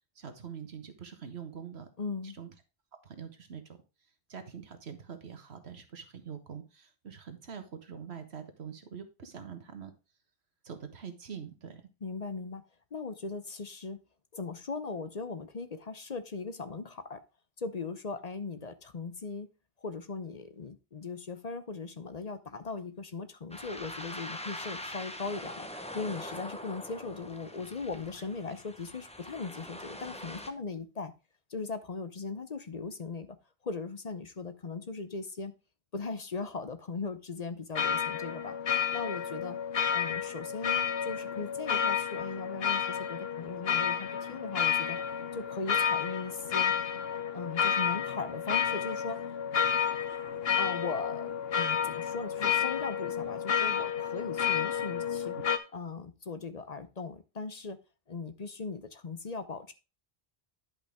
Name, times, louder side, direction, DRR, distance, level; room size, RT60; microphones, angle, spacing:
voice 1, 0.1-1.9 2.2-2.5 3.0-3.8 4.3-9.9 10.6-11.8 53.7-53.8, right 7 dB, 85° right, 1.6 m, -44 dB
voice 2, 2.0-2.3 12.0-12.6 12.9-14.0 14.3-17.2 17.6-19.5 19.8-25.7 25.9-31.1 31.5-33.3 33.6-35.5 35.9-38.5 38.9-39.6 39.9-45.0 45.3-46.7 47.3-49.3 50.6-55.4 55.7-57.8 58.1-59.7, left 4 dB, 45° left, 0.8 m, -39 dB
sound 1, 23.5-30.5, left 1 dB, 5° left, 0.8 m, -43 dB
sound 2, 37.7-55.6, left 8 dB, 70° left, 1.1 m, -31 dB
11.0 x 5.5 x 3.5 m
omnidirectional pair, 1.0 m